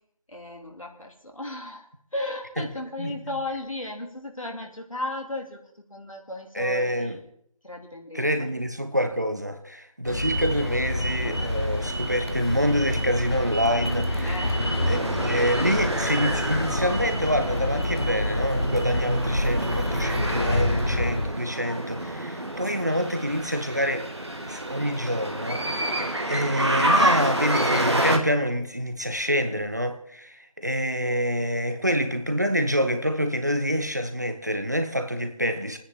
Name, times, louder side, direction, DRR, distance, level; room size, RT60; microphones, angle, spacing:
voice 1, 0.3-1.9 2.1-7.3 7.6-8.5 14.2-14.7, left 1 dB, 70° left, 2.8 m, -35 dB
voice 2, 3.0-3.4 6.5-7.2 8.1-14.5 14.9-24.1 24.5-25.9 26.3-35.8, equal, 30° right, 0.8 m, -27 dB
sound 1, 10.0-21.3, left 1 dB, 45° left, 1.1 m, -28 dB
sound 2, 10.3-28.2, right 1 dB, 50° right, 1.7 m, -29 dB
26.5 x 9.8 x 3.7 m
figure-of-eight pair, 170°, 18 cm